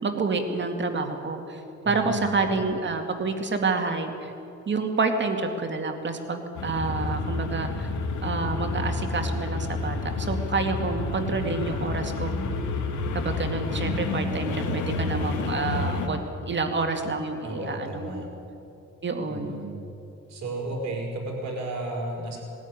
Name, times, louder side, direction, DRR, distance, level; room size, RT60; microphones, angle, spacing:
voice 1, 0.0-4.3 4.7-7.7 8.2-12.4 13.1-18.3 19.0-19.6, right 3 dB, 40° right, 5 dB, 2.2 m, -28 dB
voice 2, 1.8-2.2 17.4-18.2 19.3-19.8 20.3-22.4, right 2 dB, 65° right, 0 dB, 4.9 m, -33 dB
sound 1, 6.5-16.1, left 3 dB, 75° left, 2.6 m, -29 dB
20.0 x 13.5 x 9.8 m, 2.8 s
cardioid pair, 90°, 30 cm